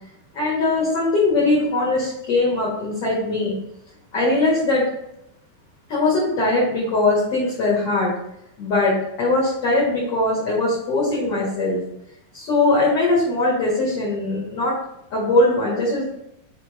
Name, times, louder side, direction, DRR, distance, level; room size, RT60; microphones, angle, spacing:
voice 1, 0.3-3.5 4.1-4.9 5.9-8.1 8.6-11.8 12.3-14.7 15.1-16.1, left 2 dB, 50° left, -7 dB, 1.9 m, -20 dB
6.4 x 4.5 x 4.9 m, 0.79 s
omnidirectional pair, 5.6 m